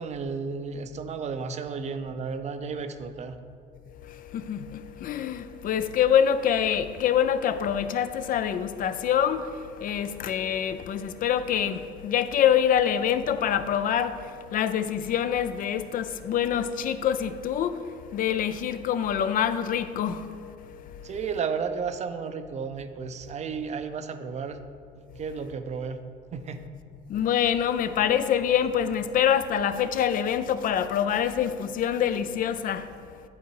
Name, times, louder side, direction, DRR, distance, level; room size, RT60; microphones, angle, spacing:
voice 1, 0.0-3.4 21.0-24.6 25.0-26.0 26.3-26.6, right 5 dB, 40° right, 0.5 m, -33 dB
voice 2, 3.9-21.1 25.1-25.2 27.1-33.3, left 9 dB, 55° left, 0.4 m, -26 dB
10.5 x 3.9 x 4.7 m
cardioid pair, 110°, 17 cm